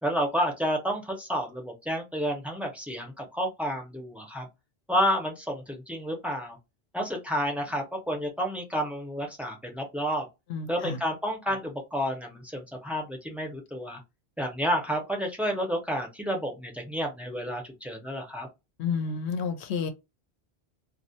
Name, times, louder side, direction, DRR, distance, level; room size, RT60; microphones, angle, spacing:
voice 1, 0.0-4.5 4.9-6.6 6.9-10.2 10.7-14.0 14.4-18.5, equal, ahead, 0.4 m, -30 dB
voice 2, 10.5-11.0 18.8-19.9, left 5 dB, 90° left, 0.9 m, -30 dB
2.3 x 2.0 x 2.7 m
omnidirectional pair, 1.1 m